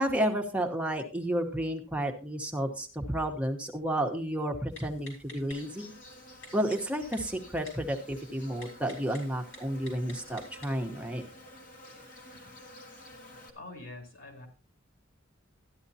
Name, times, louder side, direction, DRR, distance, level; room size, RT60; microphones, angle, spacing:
voice 1, 0.0-5.9 6.5-11.2, right 1 dB, 5° right, 2 dB, 1.0 m, -31 dB
Typing, 4.7-10.9, left 2 dB, 70° left, 4.9 m, -52 dB
Insect, 5.5-13.5, left 1 dB, 45° left, 2.1 m, -51 dB
voice 2, 13.5-14.5, left 2 dB, 85° left, 2 dB, 3.3 m, -45 dB
13.0 x 10.5 x 2.8 m, 0.35 s
head